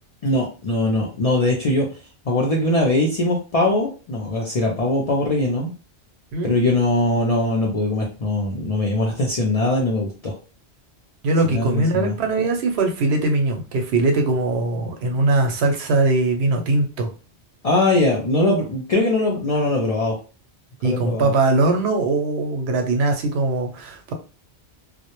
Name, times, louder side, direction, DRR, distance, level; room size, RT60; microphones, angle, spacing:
voice 1, 0.2-1.9 2.3-5.7 6.4-10.3 11.5-12.2 17.6-20.2 20.8-21.3, left 2 dB, 55° left, -1 dB, 0.4 m, -21 dB
voice 2, 11.2-17.1 20.8-24.1, right 2 dB, 75° right, 4 dB, 0.8 m, -21 dB
2.1 x 2.0 x 2.9 m, 0.34 s
omnidirectional pair, 1.1 m